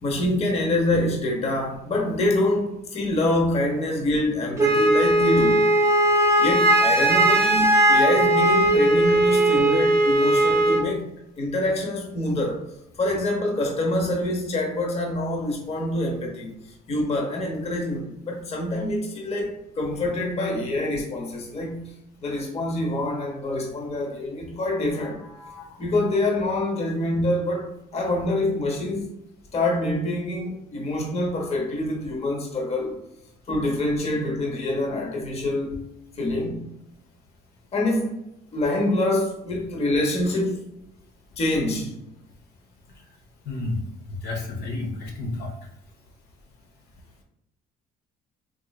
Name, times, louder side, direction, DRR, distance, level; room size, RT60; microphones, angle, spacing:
voice 1, 0.0-5.6 6.4-11.0 11.4-12.6 13.0-16.5 16.9-21.9 22.2-29.1 29.5-33.0 33.5-35.8 36.2-36.7 37.7-38.1 38.5-40.7 41.4-41.9, left 1 dB, 40° left, 0 dB, 0.8 m, -26 dB
Wind instrument woodwind instrument, 4.6-10.9, right 1 dB, 15° right, 0.5 m, -19 dB
voice 2, 43.5-43.8 44.2-45.5, left 2 dB, 75° left, 0 dB, 0.9 m, -30 dB
3.7 x 3.0 x 2.3 m, 0.81 s
cardioid pair, 110°, 17 cm